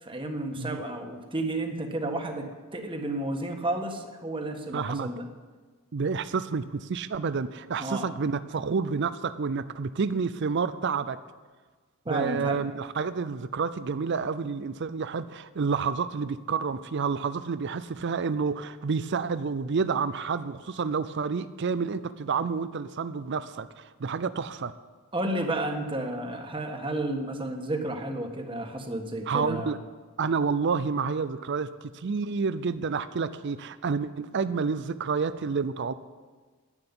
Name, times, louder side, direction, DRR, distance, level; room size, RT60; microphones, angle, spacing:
voice 1, 0.0-5.3 7.8-8.0 12.0-12.7 25.1-29.7, right 1 dB, 25° right, 4 dB, 1.5 m, -32 dB
voice 2, 4.7-5.1 5.9-11.2 12.1-24.7 29.3-29.8 30.2-35.9, right 5 dB, 55° right, 13 dB, 0.5 m, -29 dB
11.0 x 8.9 x 9.6 m, 1.4 s
head